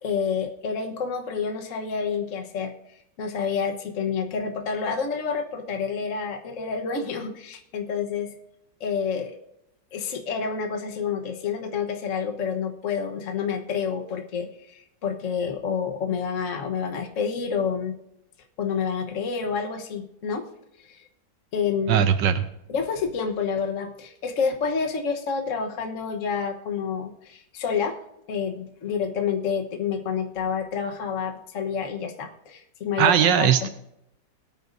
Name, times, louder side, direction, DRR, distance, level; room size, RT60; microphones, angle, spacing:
voice 1, 0.0-2.7 3.2-8.3 8.8-9.4 9.9-18.0 18.6-20.5 20.9-21.0 21.5-22.1 22.7-28.0 28.3-33.7, left 6 dB, 50° left, 3 dB, 1.3 m, -28 dB
voice 2, 21.9-22.4 33.0-33.7, right 9 dB, 80° right, 10 dB, 1.3 m, -19 dB
21.5 x 9.4 x 2.6 m, 0.81 s
omnidirectional pair, 2.0 m